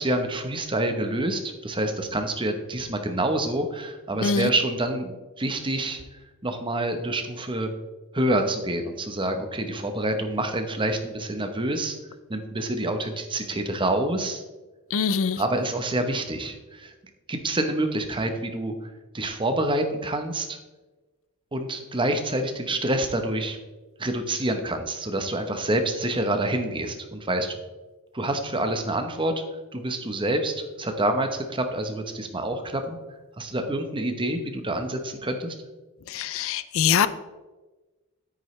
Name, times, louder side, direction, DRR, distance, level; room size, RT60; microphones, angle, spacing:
voice 1, 0.0-6.0 6.4-7.7 8.1-12.0 12.3-14.4 15.4-16.9 17.3-20.6 21.5-23.6 24.0-27.6 28.1-29.3 29.7-33.0 33.4-35.5, right 1 dB, 20° right, 6 dB, 0.9 m, -27 dB
voice 2, 4.2-4.5 14.9-15.4 36.1-37.1, left 6 dB, 65° left, 14 dB, 0.4 m, -23 dB
9.8 x 9.0 x 3.2 m, 1.2 s
head